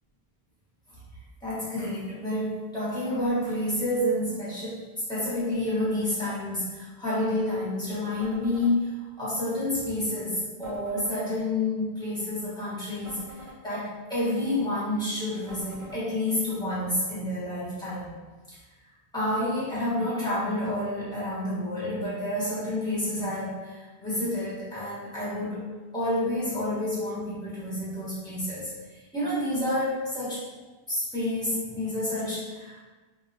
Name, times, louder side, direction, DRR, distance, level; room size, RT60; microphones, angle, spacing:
voice 1, 1.4-4.8 5.1-8.9 9.2-18.1 18.5-18.6 19.1-25.6 25.9-30.4 30.9-32.8, left 1 dB, 5° left, -10 dB, 1.4 m, -29 dB
sound 1, 8.2-8.7 10.6-11.2 13.0-13.6 15.5-16.0, right 1 dB, 55° right, 1.1 m, -45 dB
3.3 x 2.9 x 2.7 m, 1.3 s
omnidirectional pair, 1.1 m